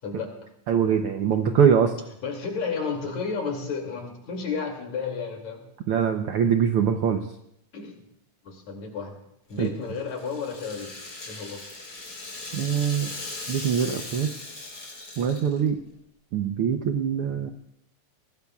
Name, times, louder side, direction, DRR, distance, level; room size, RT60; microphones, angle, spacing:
voice 1, 0.7-1.9 5.9-7.2 9.6-9.7 12.5-13.1 13.5-14.3 15.2-15.8 16.3-17.5, right 7 dB, 75° right, 6 dB, 1.3 m, -23 dB
voice 2, 2.2-5.6 7.7-8.0 8.4-9.2 9.5-10.9 11.3-11.6, left 5 dB, 65° left, 2 dB, 3.7 m, -32 dB
Rattle (instrument), 9.5-15.7, left 2 dB, 40° left, 4.8 m, -39 dB
23.0 x 18.5 x 2.4 m, 0.79 s
omnidirectional pair, 3.4 m